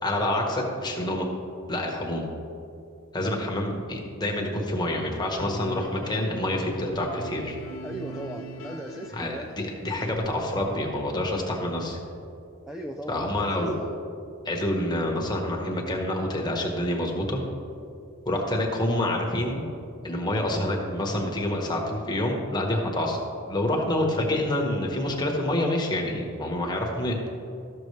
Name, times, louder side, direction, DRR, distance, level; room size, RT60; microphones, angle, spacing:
voice 1, 0.0-1.3 1.7-2.3 3.1-7.6 9.1-12.0 13.1-13.8 14.4-17.4 18.2-19.6 20.0-23.2 23.5-27.2, left 1 dB, 20° left, 0 dB, 1.1 m, -27 dB
sound 1, 5.4-10.9, equal, 65° left, 0.9 m, -40 dB
voice 2, 7.8-9.6 12.7-13.8, equal, ahead, 1 dB, 0.3 m, -37 dB
13.0 x 6.7 x 3.2 m, 2.6 s
head